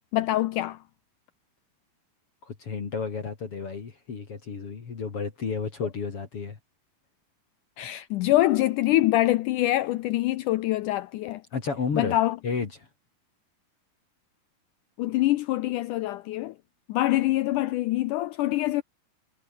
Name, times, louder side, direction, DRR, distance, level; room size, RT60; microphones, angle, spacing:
voice 1, 0.1-0.8 7.8-11.4 12.0-12.4 15.0-16.5 16.9-18.8, left 16 dB, 75° left, 2.0 m, -24 dB
voice 2, 2.4-6.6 11.5-12.2 12.4-12.9, left 5 dB, 40° left, 3.4 m, -32 dB
omnidirectional pair, 4.1 m